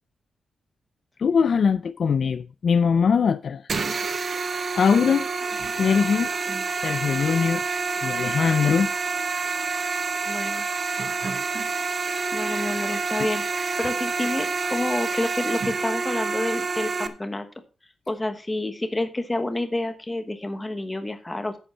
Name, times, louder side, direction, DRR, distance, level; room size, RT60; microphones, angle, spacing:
voice 1, 1.2-3.7 4.1-4.2 4.8-5.3 5.8-6.3 6.8-7.6 8.0-8.9, left 6 dB, 50° left, 0.4 m, -21 dB
sound 1, 3.7-17.1, right 4 dB, 40° right, 0.8 m, -28 dB
voice 2, 10.2-10.7 11.9-12.0 12.3-17.5 18.1-21.6, left 2 dB, 10° left, 1.1 m, -29 dB
9.9 x 8.1 x 4.4 m
wide cardioid pair, 180°, 0 cm